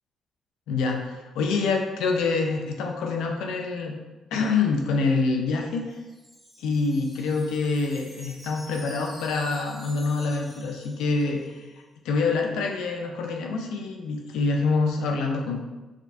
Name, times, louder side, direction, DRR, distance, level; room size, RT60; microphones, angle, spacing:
voice 1, 0.7-3.9 4.3-6.0 6.6-11.6 12.0-15.6, left 4 dB, 90° left, 2 dB, 0.5 m, -26 dB
Wind chime, 5.6-11.6, equal, 5° left, 1.0 m, -48 dB
4.8 x 2.3 x 2.6 m, 1.2 s
cardioid pair, 90°, 0 cm